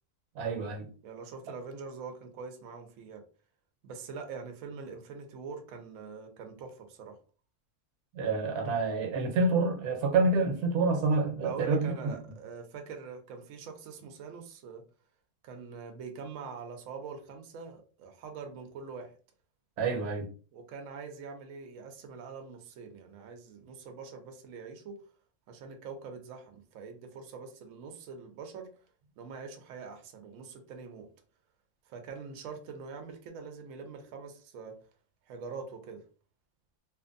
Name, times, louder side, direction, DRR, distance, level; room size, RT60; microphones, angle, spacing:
voice 1, 0.3-0.9 8.1-12.2 19.8-20.3, right 3 dB, 85° right, 1.2 m, -28 dB
voice 2, 1.0-3.2 3.8-7.2 11.4-14.8 15.4-19.1 20.5-25.0 25.5-28.7 29.2-31.1 31.9-34.8 35.3-36.0, right 5 dB, 65° right, 0.9 m, -44 dB
2.8 x 2.5 x 2.5 m
omnidirectional pair, 1.6 m